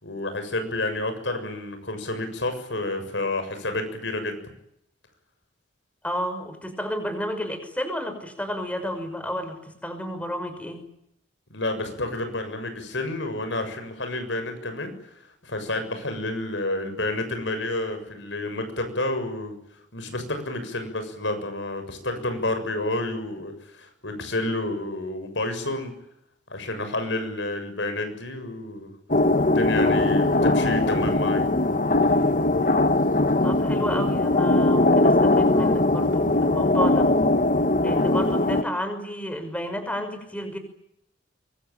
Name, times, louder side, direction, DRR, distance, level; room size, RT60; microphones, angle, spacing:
voice 1, 0.0-4.4 11.5-19.6 19.9-25.9 26.5-28.9 29.4-31.5, left 2 dB, 70° left, 8 dB, 7.0 m, -30 dB
voice 2, 6.0-10.8 33.4-37.1 37.8-40.6, equal, 5° left, 8 dB, 5.8 m, -31 dB
sound 1, 29.1-38.6, left 2 dB, 45° left, 1.4 m, -20 dB
25.0 x 23.5 x 9.1 m, 0.76 s
head